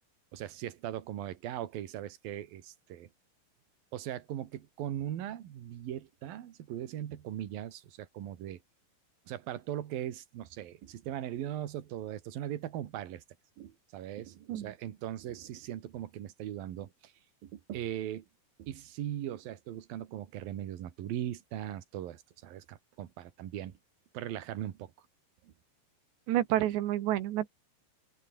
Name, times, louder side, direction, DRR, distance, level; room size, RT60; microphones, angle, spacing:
voice 1, 0.3-3.1 3.9-8.6 9.3-13.2 13.6-17.1 17.4-18.2 18.6-23.8 24.1-24.9 25.4-25.5, right 11 dB, 60° right, 3.4 m, -39 dB
voice 2, 26.3-27.5, right 13 dB, 80° right, 3.7 m, -29 dB
open air
omnidirectional pair, 5.0 m